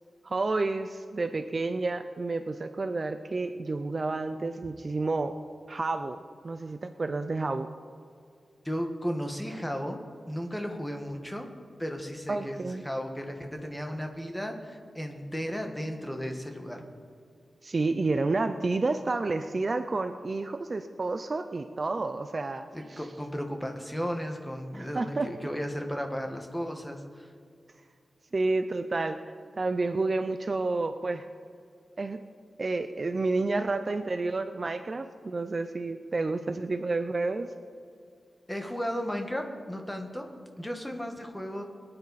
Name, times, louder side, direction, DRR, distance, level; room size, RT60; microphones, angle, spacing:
voice 1, 0.2-5.3 5.7-7.7 12.3-12.8 17.6-23.0 24.7-25.3 28.3-31.2 32.0-32.2 32.6-37.5, right 3 dB, 35° right, 9 dB, 0.5 m, -30 dB
voice 2, 8.6-10.0 10.3-11.5 11.8-16.8 22.7-27.3 38.5-40.3 40.6-41.6, equal, 5° left, 4 dB, 1.3 m, -34 dB
22.0 x 9.8 x 4.1 m, 2.3 s
wide cardioid pair, 150°, 0 cm